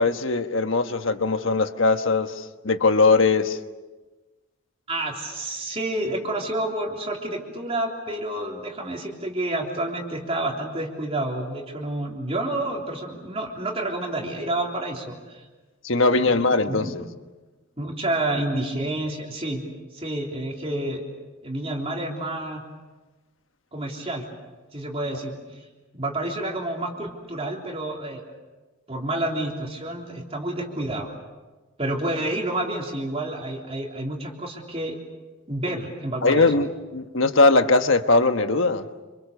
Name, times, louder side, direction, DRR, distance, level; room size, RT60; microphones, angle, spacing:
voice 1, 0.0-2.3 2.6-3.6 15.8-17.0 36.2-36.7 36.9-38.8, left 3 dB, 65° left, 8 dB, 1.4 m, -20 dB
voice 2, 4.9-15.5 16.1-16.9 17.8-19.6 19.9-21.0 21.4-22.6 23.7-24.3 24.7-25.7 25.9-28.2 28.9-31.1 31.8-35.0 35.5-36.5, right 1 dB, 25° right, 0 dB, 3.4 m, -29 dB
27.5 x 27.0 x 6.9 m, 1.2 s
head